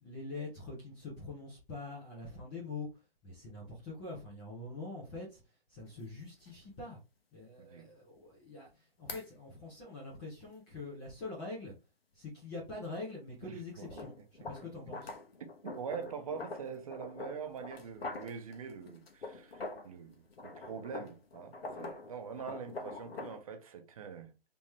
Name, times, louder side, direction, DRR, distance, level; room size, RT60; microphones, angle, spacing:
voice 1, 0.0-2.9 3.2-5.4 5.7-7.0 7.3-11.7 12.1-15.1, left 3 dB, 10° left, 0.5 m, -44 dB
sound 1, 5.9-6.0 6.5-6.6 9.1-9.3 13.8-20.0 20.3-23.4, left 3 dB, 80° left, 1.0 m, -45 dB
voice 2, 7.6-7.9 13.4-14.0 15.6-24.3, right 6 dB, 40° right, 0.7 m, -44 dB
3.5 x 3.0 x 3.0 m
figure-of-eight pair, 145°, 30 cm